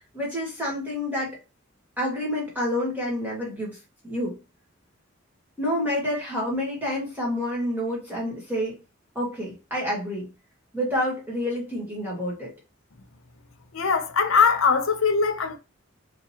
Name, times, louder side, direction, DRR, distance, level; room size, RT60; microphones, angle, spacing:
voice 1, 0.0-1.4 2.0-3.8 4.0-4.4 5.6-8.8 9.1-10.3 10.7-12.5, left 1 dB, 10° right, 1.5 m, -28 dB
voice 2, 13.7-15.6, left 5 dB, 70° left, 0.7 m, -21 dB
4.9 x 3.0 x 2.8 m
head